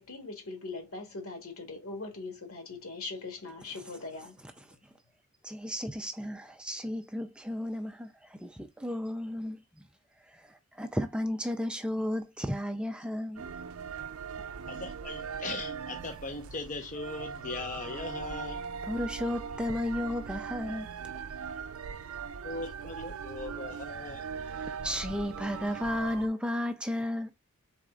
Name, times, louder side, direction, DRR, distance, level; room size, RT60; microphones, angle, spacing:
voice 1, 0.0-4.4, left 3 dB, 70° left, 1.8 m, -41 dB
voice 2, 5.4-9.6 10.2-13.5 18.9-20.9 24.5-27.3, left 1 dB, 5° right, 0.4 m, -33 dB
sound 1, 13.4-26.3, right 6 dB, 70° right, 0.4 m, -40 dB
voice 3, 14.6-18.6 22.4-24.3, left 3 dB, 35° left, 0.6 m, -39 dB
4.1 x 3.5 x 3.6 m
head